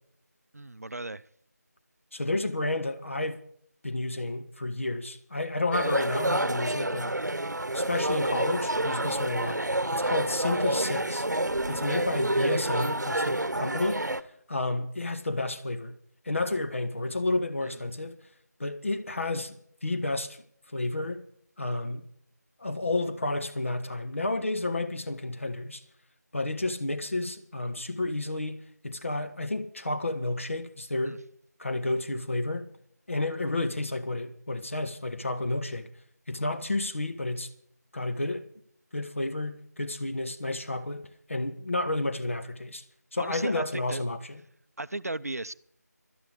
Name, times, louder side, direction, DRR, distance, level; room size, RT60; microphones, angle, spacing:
voice 1, 0.5-1.2 17.6-17.8 31.0-31.2 43.2-44.0 44.8-45.5, right 2 dB, 60° right, 0.6 m, -36 dB
voice 2, 2.1-3.4 3.8-7.2 7.7-9.6 9.9-11.3 11.7-14.0 14.5-15.9 16.2-18.2 18.6-20.4 20.7-21.2 21.6-22.0 22.6-25.8 26.3-31.2 31.6-32.7 33.1-35.9 36.3-37.5 37.9-38.4 38.9-42.8 43.1-44.4, left 2 dB, 45° left, 1.5 m, -31 dB
sound 1, 5.7-14.2, right 1 dB, 85° right, 1.0 m, -28 dB
17.0 x 12.5 x 5.0 m
figure-of-eight pair, 170°, 9 cm